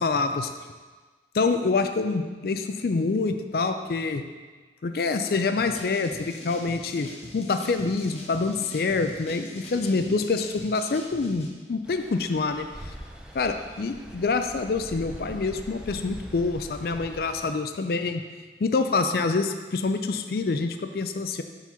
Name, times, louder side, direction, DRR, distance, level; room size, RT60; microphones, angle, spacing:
voice 1, 0.0-0.5 1.3-4.2 4.8-12.7 13.3-18.2 18.6-21.4, left 4 dB, 55° left, 7 dB, 0.4 m, -26 dB
sound 1, 5.6-11.5, left 1 dB, 35° left, 0.9 m, -43 dB
Stream, 11.8-17.5, equal, 5° right, 0.5 m, -43 dB
7.3 x 3.9 x 5.6 m, 1.4 s
head